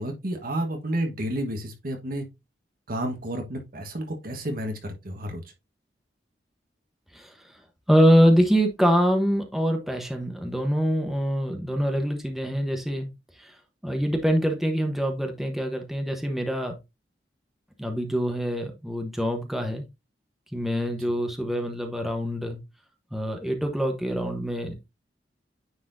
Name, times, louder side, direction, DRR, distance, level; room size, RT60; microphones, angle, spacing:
voice 1, 0.0-2.2 2.9-5.4, right 1 dB, 55° right, 1.4 m, -31 dB
voice 2, 7.9-13.1 13.4-13.5 13.8-16.7 17.8-19.8 20.5-22.6 23.1-24.9, equal, ahead, 0.9 m, -24 dB
9.5 x 4.2 x 2.6 m
head